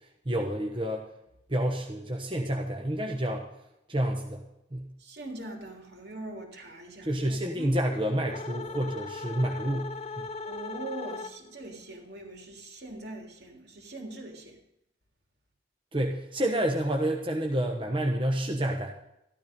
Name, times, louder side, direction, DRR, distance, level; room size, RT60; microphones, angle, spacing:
voice 1, 0.2-1.0 1.5-3.4 3.9-4.4 4.7-4.9 7.0-10.3 15.9-18.9, right 1 dB, 30° right, 1 dB, 1.2 m, -29 dB
voice 2, 5.0-7.1 10.5-14.6, right 2 dB, 60° right, 1 dB, 3.4 m, -42 dB
sound 1, 7.5-11.7, left 3 dB, 35° left, 0.7 m, -39 dB
14.0 x 13.0 x 5.4 m, 0.83 s
head